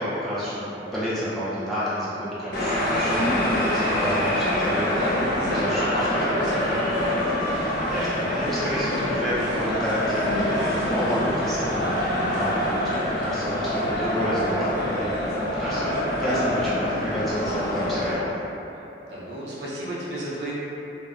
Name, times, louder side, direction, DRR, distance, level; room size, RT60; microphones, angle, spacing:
voice 1, 0.0-4.9 5.4-5.9 6.1-6.3 6.6-6.8 7.2-15.1 15.5-18.4, equal, ahead, -12 dB, 0.5 m, -30 dB
sound 1, 2.5-18.1, left 1 dB, 60° left, 0.5 m, -25 dB
voice 2, 4.8-7.7 19.0-20.5, equal, 75° right, -7 dB, 0.7 m, -33 dB
2.1 x 2.1 x 3.6 m, 3.0 s
head